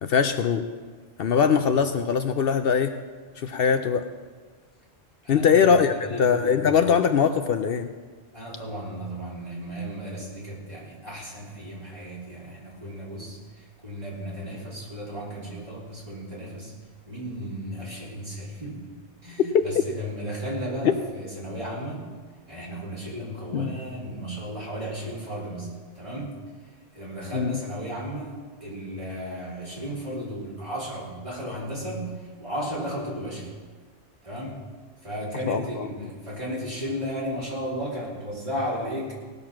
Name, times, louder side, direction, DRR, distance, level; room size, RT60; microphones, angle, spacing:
voice 1, 0.0-0.6 1.2-2.9 3.4-4.1 5.3-7.9 20.8-20.9 23.5-23.8 27.3-27.6 35.5-35.9, left 6 dB, 65° left, 8 dB, 0.8 m, -22 dB
voice 2, 5.2-6.8 8.3-16.7 17.1-18.9 19.2-22.0 22.5-25.7 26.0-26.3 26.9-32.1 32.4-33.5 34.2-34.6 35.0-39.1, equal, 30° right, -6 dB, 3.5 m, -34 dB
18.5 x 6.9 x 5.9 m, 1.5 s
omnidirectional pair, 1.1 m